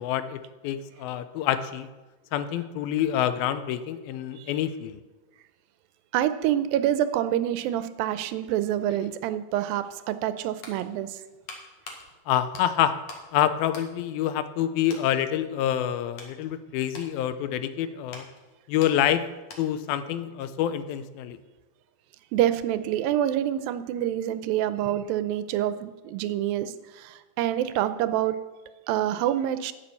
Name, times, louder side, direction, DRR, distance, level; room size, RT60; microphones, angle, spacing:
voice 1, 0.0-1.9 2.3-5.0 12.3-12.9 13.3-18.3 18.7-19.3 19.6-21.4, left 11 dB, 85° left, 12 dB, 2.6 m, -27 dB
voice 2, 6.1-11.2 22.3-28.4 28.9-29.7, right 11 dB, 85° right, 12 dB, 2.4 m, -27 dB
sound 1, 10.4-13.3 13.6-14.6 14.9-15.1 15.7-19.9 20.2-20.4, left 3 dB, 55° left, 2.6 m, -46 dB
10.5 x 8.9 x 7.0 m, 1.2 s
omnidirectional pair, 4.1 m